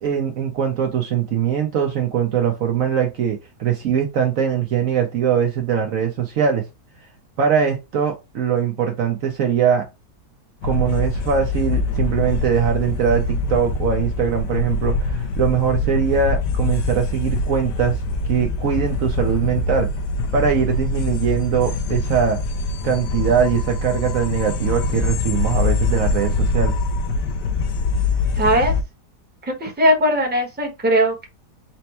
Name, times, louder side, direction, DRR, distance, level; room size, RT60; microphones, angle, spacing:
voice 1, 0.0-6.7 7.4-9.9 10.6-18.0 18.3-19.9 20.3-22.4 22.8-26.7, right 7 dB, 60° right, 1.0 m, -21 dB
sound 1, 10.6-28.8, left 3 dB, 85° left, 1.3 m, -23 dB
voice 2, 28.4-28.7 29.6-31.3, equal, 10° right, 0.9 m, -18 dB
4.3 x 2.2 x 4.2 m
omnidirectional pair, 1.7 m